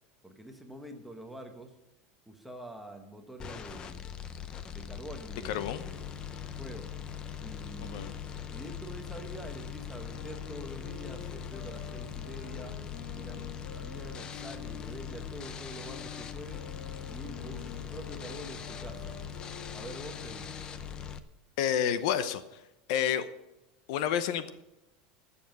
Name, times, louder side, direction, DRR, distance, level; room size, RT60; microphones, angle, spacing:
voice 1, 0.2-1.8 2.3-4.1 4.7-6.0 6.6-6.9 7.4-8.2 8.5-12.8 13.1-13.5 13.7-16.8 17.1-19.2 19.7-20.5, right 1 dB, ahead, 4 dB, 1.1 m, -46 dB
sound 1, 3.4-21.2, left 8 dB, 20° left, 0.6 m, -41 dB
voice 2, 5.4-5.8 7.9-8.1 21.6-22.4 22.9-23.3 23.9-24.5, left 9 dB, 60° left, 13 dB, 0.8 m, -29 dB
sound 2, 10.0-15.4 15.8-20.7, left 5 dB, 90° left, 2.2 m, -49 dB
13.5 x 7.1 x 7.6 m, 0.95 s
supercardioid pair, 175°, 4 cm